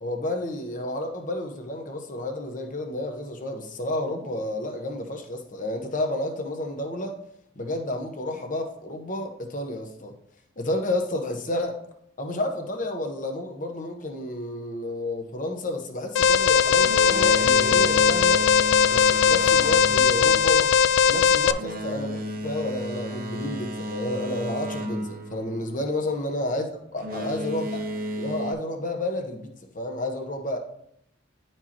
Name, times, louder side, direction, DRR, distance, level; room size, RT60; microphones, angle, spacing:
voice 1, 0.0-7.2 7.6-10.1 10.6-11.8 12.2-18.4 18.9-20.7 21.1-26.7 26.9-27.7 28.2-30.6, left 1 dB, 40° left, 0.9 m, -31 dB
Alarm, 16.2-21.5, left 7 dB, 80° left, 0.3 m, -19 dB
Boat Water vehicle, 16.7-26.1 26.9-28.5, equal, 50° right, 0.7 m, -34 dB
10.5 x 4.5 x 2.9 m
head